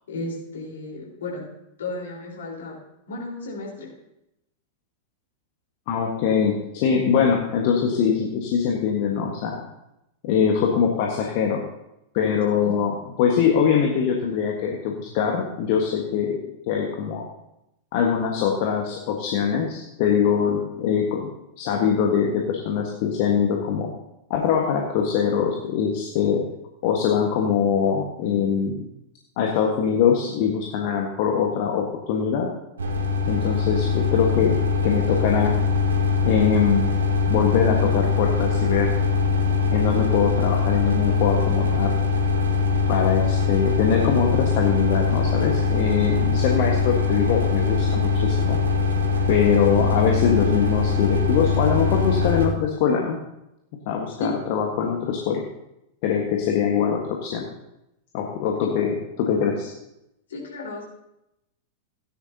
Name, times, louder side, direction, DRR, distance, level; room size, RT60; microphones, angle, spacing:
voice 1, 0.1-1.4 1.8-2.8 3.1-3.9 12.6-12.8 54.2-54.4 58.6-58.7 60.3-60.8, left 2 dB, 65° left, -3 dB, 4.3 m, -33 dB
voice 2, 5.9-9.6 10.2-11.6 12.1-12.9 13.2-17.2 17.9-21.3 21.6-23.9 24.3-26.4 26.8-28.8 29.4-32.5 33.3-35.5 36.2-36.9 37.3-39.0 39.7-41.9 42.9-48.6 49.3-53.2 53.9-55.4 56.0-57.4 58.1-59.7, left 7 dB, 45° left, 1 dB, 1.5 m, -23 dB
sound 1, 32.8-52.5, left 5 dB, 70° right, 1.8 m, -22 dB
17.0 x 10.0 x 2.9 m, 0.85 s
figure-of-eight pair, 90°, 0 cm